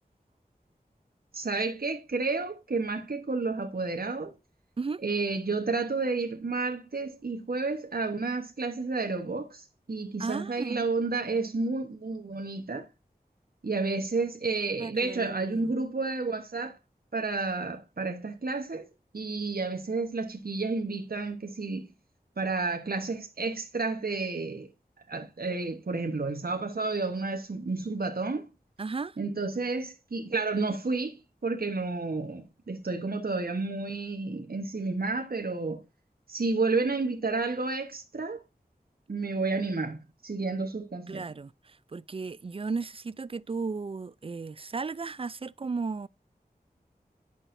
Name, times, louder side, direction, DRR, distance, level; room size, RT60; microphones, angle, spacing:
voice 1, 1.3-4.3 5.0-12.9 13.6-16.8 17.1-18.9 19.1-21.9 22.4-24.7 25.1-28.5 29.2-35.8 36.3-38.4 39.1-41.3, right 3 dB, 65° right, 1.1 m, -31 dB
voice 2, 10.2-10.8 14.8-15.7 28.8-29.2 41.1-46.1, right 4 dB, 35° right, 0.4 m, -35 dB
10.5 x 6.1 x 2.6 m
wide cardioid pair, 55°, 16 cm